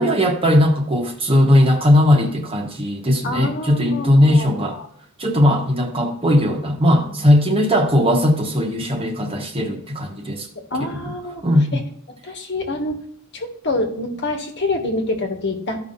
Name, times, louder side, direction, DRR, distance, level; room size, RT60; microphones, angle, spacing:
voice 1, 0.0-4.8 5.2-10.5 11.4-11.8, left 1 dB, 25° right, 3 dB, 1.1 m, -18 dB
voice 2, 3.2-4.9 10.5-11.4 11.7-11.8 12.2-13.0 13.3-15.8, left 2 dB, 55° left, 3 dB, 1.5 m, -26 dB
14.0 x 5.5 x 2.6 m, 0.66 s
head